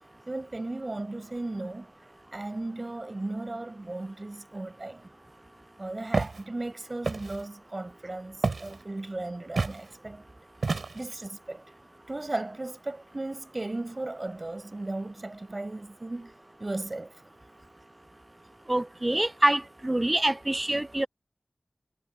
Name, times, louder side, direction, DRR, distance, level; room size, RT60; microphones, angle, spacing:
voice 1, 0.3-1.9 2.3-5.0 5.8-10.2 10.9-11.6 12.1-16.3 16.6-17.1, right 2 dB, 45° right, 5.8 m, -36 dB
Walk footsteps, 6.1-6.4 7.0-7.4 8.4-8.8 9.6-9.8 10.6-11.1, right 3 dB, 85° right, 3.1 m, -29 dB
voice 2, 18.7-21.1, right 1 dB, 30° right, 0.3 m, -25 dB
cardioid pair, 40°, 0 cm